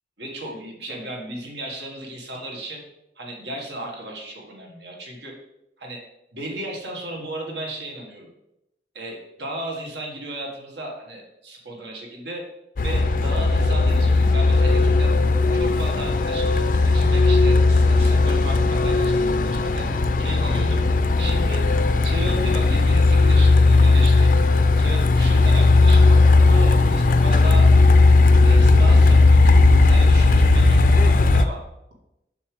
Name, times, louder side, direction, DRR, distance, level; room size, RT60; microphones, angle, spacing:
voice 1, 0.2-2.8 3.2-5.3 5.8-6.0 6.3-8.3 8.9-12.4 12.8-15.1 15.5-19.9 20.2-20.8 21.2-21.6 22.0-24.3 24.8-27.7 28.4-31.6, right 1 dB, 80° right, -1 dB, 1.7 m, -35 dB
Truck, 12.8-31.4, left 3 dB, 50° left, 0.4 m, -16 dB
7.0 x 6.4 x 3.3 m, 0.86 s
head